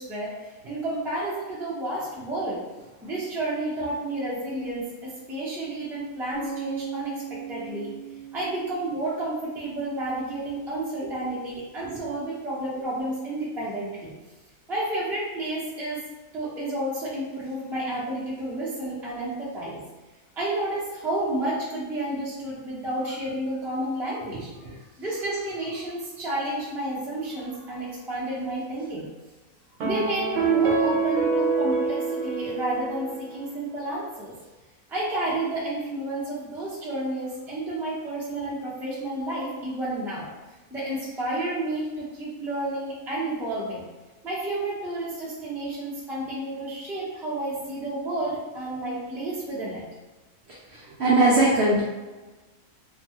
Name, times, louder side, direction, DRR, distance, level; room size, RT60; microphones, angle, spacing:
voice 1, 0.0-2.6 3.0-7.9 8.3-14.1 14.7-16.0 16.3-19.8 20.4-29.0 29.8-34.4 34.9-40.3 40.7-43.8 44.2-49.8, right 1 dB, 5° right, -7 dB, 0.4 m, -31 dB
sound 1, 6.3-10.2, right 6 dB, 40° left, 0.7 m, -38 dB
sound 2, 29.8-33.3, right 4 dB, 85° right, 1.0 m, -25 dB
voice 2, 50.7-51.8, right 2 dB, 65° right, -6 dB, 0.7 m, -21 dB
2.9 x 2.3 x 2.8 m, 1.2 s
omnidirectional pair, 1.5 m